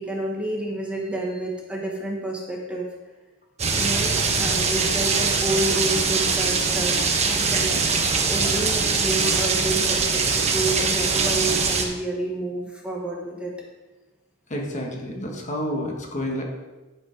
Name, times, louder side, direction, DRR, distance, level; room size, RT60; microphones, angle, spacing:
voice 1, 0.0-2.9 3.7-4.1 4.4-7.8 8.1-13.5, right 1 dB, 5° right, -2 dB, 1.3 m, -29 dB
sound 1, 3.6-11.9, right 4 dB, 35° right, 1.0 m, -22 dB
voice 2, 14.5-16.4, equal, 40° left, 0 dB, 1.5 m, -29 dB
11.0 x 5.2 x 5.2 m, 1.1 s
head